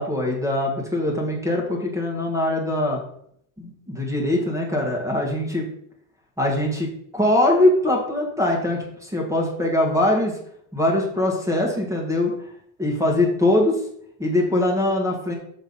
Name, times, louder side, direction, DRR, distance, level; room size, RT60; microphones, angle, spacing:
voice 1, 0.0-3.0 3.6-5.7 6.4-10.4 10.7-12.3 12.8-13.8 14.2-15.3, left 1 dB, 5° right, 0 dB, 1.6 m, -22 dB
6.5 x 3.5 x 5.4 m, 0.69 s
cardioid pair, 135°, 44 cm